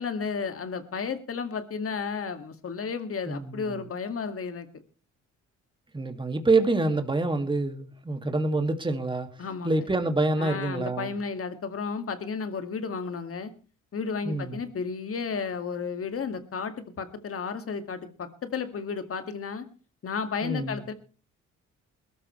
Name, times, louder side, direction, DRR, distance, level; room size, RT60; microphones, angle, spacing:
voice 1, 0.0-4.7 9.4-9.8 10.4-13.5 13.9-19.7 20.0-20.9, left 5 dB, 50° left, 9 dB, 2.2 m, -33 dB
voice 2, 3.3-3.8 5.9-9.3 9.6-11.1 14.2-14.6 20.4-20.8, right 2 dB, 15° right, 6 dB, 2.2 m, -26 dB
21.0 x 13.5 x 3.2 m, 0.34 s
cardioid pair, 90°, 30 cm